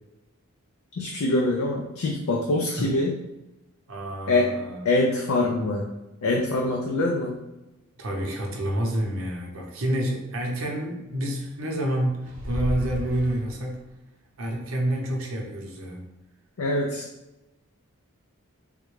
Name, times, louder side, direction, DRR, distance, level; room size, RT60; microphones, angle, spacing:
voice 1, 1.0-3.2 4.3-4.5 4.8-5.9 6.2-7.4 16.6-17.1, left 2 dB, 80° left, 0 dB, 0.4 m, -24 dB
voice 2, 3.9-4.8 8.0-13.8 14.4-16.1, right 1 dB, 70° right, 0 dB, 0.7 m, -28 dB
sound 1, 12.2-13.9, equal, 35° right, 0.6 m, -33 dB
3.6 x 2.2 x 3.1 m, 0.99 s
head